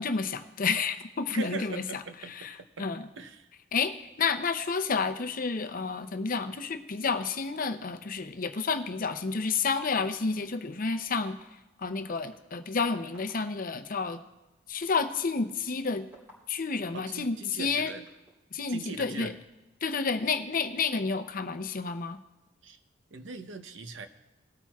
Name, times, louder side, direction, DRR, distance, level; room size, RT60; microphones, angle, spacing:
voice 1, 0.0-1.8 2.3-3.1 3.7-11.4 11.8-14.2 14.7-16.1 16.5-17.9 18.5-19.3 19.8-22.2, left 4 dB, 50° left, 9 dB, 0.6 m, -30 dB
voice 2, 1.3-2.3 2.8-2.9 3.2-3.5 16.9-18.0 18.7-19.3 22.6-22.8 23.1-24.1, right 4 dB, 75° right, 8 dB, 0.8 m, -40 dB
sound 1, 10.5-10.6 11.4-11.5 12.1-12.3 13.1-13.3 14.1-14.2 14.8-16.9 17.5-18.3, equal, 10° right, 3.6 m, -54 dB
20.0 x 8.7 x 2.4 m, 1.0 s
head